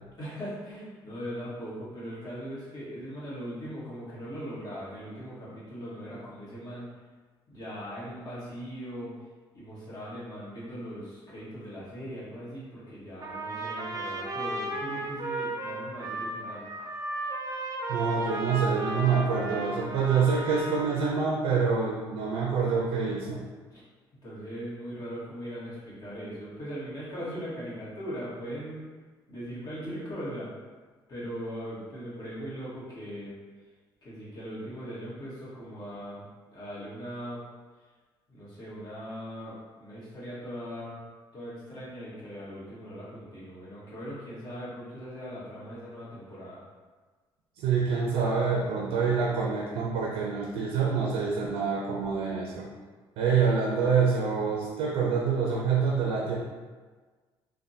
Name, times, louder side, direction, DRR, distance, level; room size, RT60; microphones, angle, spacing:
voice 1, 0.2-6.9 7.5-9.1 9.5-16.6 17.2-17.3 23.7-23.8 24.2-28.9 29.3-30.5 31.1-33.3 34.0-36.2 36.5-37.4 38.3-41.0 41.3-46.6, equal, 45° left, -8 dB, 1.4 m, -39 dB
Trumpet, 13.2-21.3, right 2 dB, 35° right, 0.5 m, -35 dB
voice 2, 17.9-23.4 47.6-52.7 53.2-56.4, right 5 dB, 85° right, -2 dB, 0.5 m, -26 dB
3.4 x 2.2 x 2.7 m, 1.4 s
cardioid pair, 90°, 10 cm